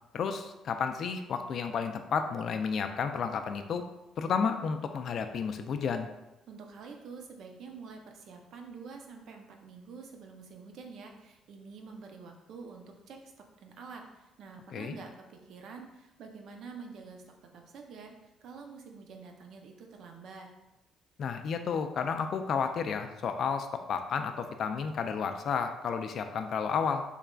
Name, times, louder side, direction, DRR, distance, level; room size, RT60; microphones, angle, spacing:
voice 1, 0.1-3.8 4.2-6.1 14.7-15.0 21.2-27.0, left 6 dB, 55° left, 7 dB, 0.3 m, -32 dB
voice 2, 6.5-13.3 13.6-18.2 18.4-20.5, right 5 dB, 65° right, 3 dB, 0.5 m, -47 dB
3.7 x 3.2 x 2.3 m, 0.96 s
cardioid pair, 110°, 0 cm